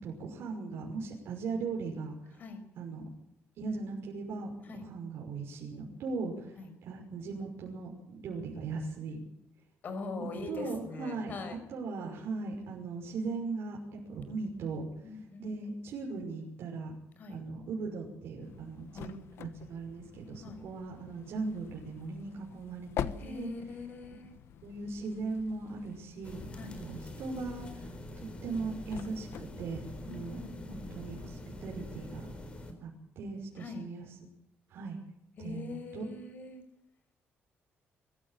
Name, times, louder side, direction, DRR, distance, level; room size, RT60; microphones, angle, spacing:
voice 1, 0.0-2.1 2.8-3.1 3.6-7.9 8.2-9.2 10.2-16.9 17.3-19.1 19.4-23.5 24.6-26.5 26.8-27.9 28.4-30.4 30.7-32.3 32.8-32.9 33.2-34.3 34.7-35.0 35.4-36.0, right 4 dB, 65° right, -1 dB, 6.0 m, -39 dB
voice 2, 9.8-11.6 15.0-15.5 17.2-17.4 18.9-19.2 20.4-20.6 23.2-24.3 26.5-26.8 30.0-30.8 33.6-33.8 35.4-36.6, left 3 dB, 40° left, 8 dB, 5.6 m, -42 dB
sound 1, 18.4-30.4, left 9 dB, 70° left, 1.2 m, -46 dB
sound 2, 26.2-32.7, left 1 dB, 25° left, 4.3 m, -45 dB
24.0 x 14.5 x 9.1 m, 0.79 s
cardioid pair, 170°, 4 cm